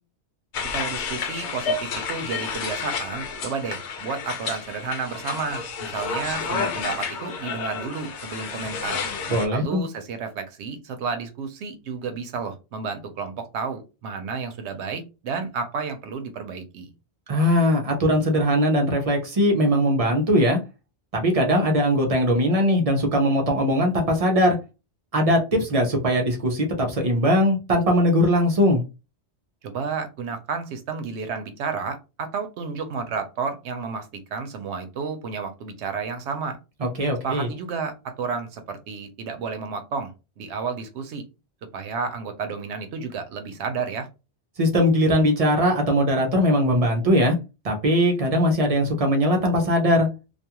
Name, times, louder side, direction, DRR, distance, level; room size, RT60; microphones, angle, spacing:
sound 1, 0.5-9.5, left 5 dB, 85° left, 0.9 m, -30 dB
voice 1, 0.7-9.0 9.5-16.9 29.6-36.6 37.2-41.2 41.7-44.1, right 5 dB, 80° right, 8 dB, 0.8 m, -31 dB
voice 2, 9.3-9.8 17.3-20.6 21.1-24.6 25.1-28.8 36.8-37.5 44.6-47.4 47.6-50.1, equal, 45° right, 3 dB, 0.5 m, -20 dB
2.4 x 2.3 x 2.8 m, 0.29 s
omnidirectional pair, 1.1 m